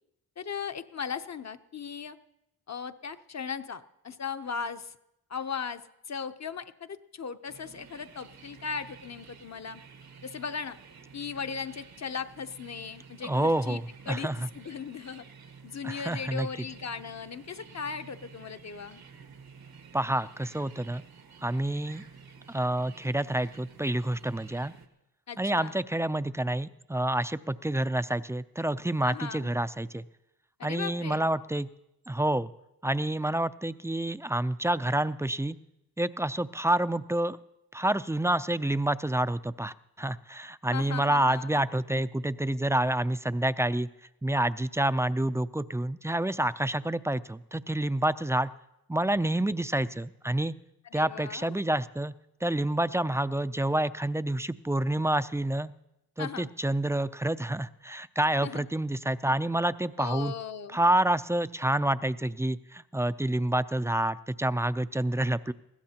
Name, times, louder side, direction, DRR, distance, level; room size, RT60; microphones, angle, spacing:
voice 1, 0.4-2.2 2.7-5.0 5.3-9.8 10.2-10.8 11.1-13.8 14.1-15.2 15.6-19.0 25.3-25.7 29.0-29.5 30.6-31.3 40.7-41.6 50.9-51.6 56.2-56.5 58.4-58.7 60.0-60.8, left 6 dB, 45° left, 9 dB, 0.8 m, -37 dB
sound 1, 7.5-24.9, right 5 dB, 80° right, 1.4 m, -51 dB
voice 2, 13.2-13.8 14.1-14.5 15.8-16.5 19.9-21.0 21.4-22.0 22.5-24.7 25.4-30.0 30.6-31.7 32.1-32.5 32.8-35.6 36.0-37.4 37.7-43.9 44.2-48.5 48.9-50.5 50.9-52.1 52.4-55.7 56.2-60.3 60.7-65.5, right 1 dB, 10° right, 14 dB, 0.4 m, -28 dB
20.5 x 15.5 x 2.9 m, 0.88 s
cardioid pair, 60°, 37 cm